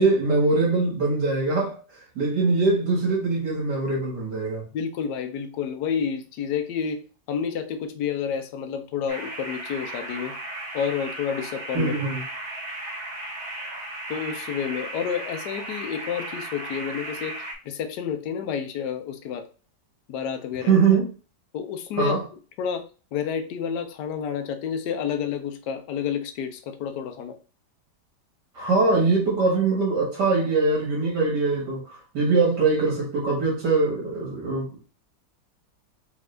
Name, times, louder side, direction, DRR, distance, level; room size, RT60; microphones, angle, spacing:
voice 1, 0.0-1.8 2.2-4.6 11.7-12.2 20.7-21.1 22.0-22.2 28.5-34.8, right 3 dB, 70° right, 2.0 m, -22 dB
voice 2, 4.7-10.4 10.7-11.9 14.1-19.5 20.1-21.0 21.5-22.1 22.6-22.8 23.1-27.4, left 7 dB, 75° left, 1.2 m, -30 dB
sound 1, 9.1-17.5, right 1 dB, 40° right, 1.0 m, -35 dB
3.6 x 3.4 x 3.2 m
omnidirectional pair, 1.9 m